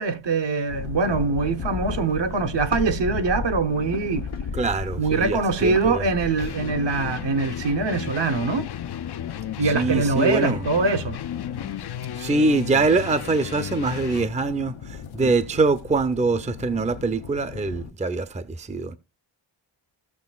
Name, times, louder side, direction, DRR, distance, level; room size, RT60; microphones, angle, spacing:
voice 1, 0.0-4.3 5.0-8.7 9.6-11.2 15.2-15.3, right 4 dB, 65° right, 1.0 m, -23 dB
sound 1, 0.7-17.9, left 6 dB, 90° left, 1.0 m, -36 dB
voice 2, 4.5-6.0 9.6-10.6 12.1-19.0, right 3 dB, 15° right, 0.6 m, -24 dB
sound 2, 6.4-14.3, left 10 dB, 60° left, 0.5 m, -34 dB
16.5 x 6.4 x 2.3 m
wide cardioid pair, 120°, 46 cm